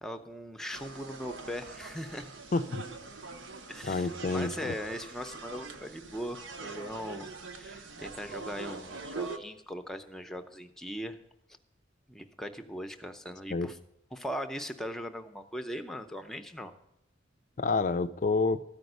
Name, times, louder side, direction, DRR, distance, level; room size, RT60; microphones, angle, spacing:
voice 1, 0.0-2.3 3.7-11.2 12.1-13.8 14.1-16.7, equal, ahead, 0.6 m, -40 dB
sound 1, 0.7-9.4, right 3 dB, 80° right, 0.8 m, -43 dB
voice 2, 2.5-2.8 3.8-4.7 13.5-13.7 17.6-18.6, left 3 dB, 40° left, 0.4 m, -29 dB
13.5 x 5.2 x 7.9 m
head